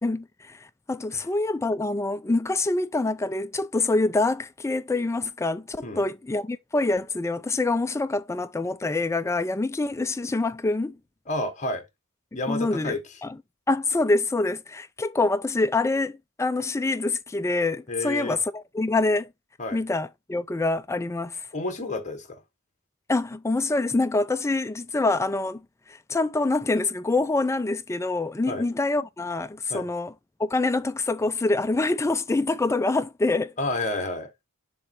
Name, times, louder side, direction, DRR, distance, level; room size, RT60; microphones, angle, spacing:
voice 1, 0.0-0.6 0.9-11.0 12.5-13.0 13.2-13.4 13.7-19.3 19.7-21.4 23.1-25.6 26.1-30.1 30.4-33.5, left 2 dB, 15° left, 0.4 m, -25 dB
voice 2, 11.3-11.8 12.3-13.0 17.9-18.4 19.6-19.8 21.5-22.4 28.5-28.6 29.7-29.8 33.6-34.3, left 2 dB, 35° left, 1.4 m, -30 dB
7.0 x 3.1 x 4.4 m
head